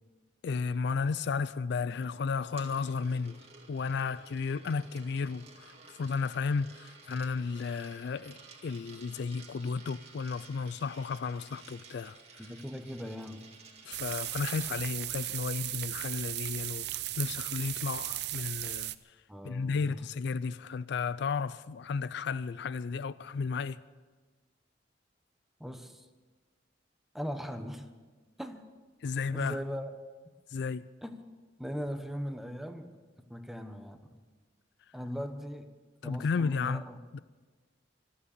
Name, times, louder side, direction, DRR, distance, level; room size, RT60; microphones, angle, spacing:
voice 1, 0.4-3.4 3.7-5.7 6.0-8.4 8.6-12.2 13.9-18.9 19.4-23.8 29.0-29.6 30.5-30.8 36.0-36.8 37.1-37.2, left 5 dB, 65° left, 0.4 m, -33 dB
Coin (dropping), 2.0-14.8, right 4 dB, 35° right, 2.0 m, -53 dB
voice 2, 12.4-13.5 19.3-20.0 25.6-26.1 27.1-27.9 28.4-28.6 29.3-29.9 31.0-31.2 31.6-32.9 33.3-34.0 34.9-35.7 36.0-37.0, equal, ahead, 1.0 m, -39 dB
sound 1, 13.9-18.9, right 15 dB, 60° right, 0.5 m, -36 dB
25.0 x 8.6 x 6.7 m
head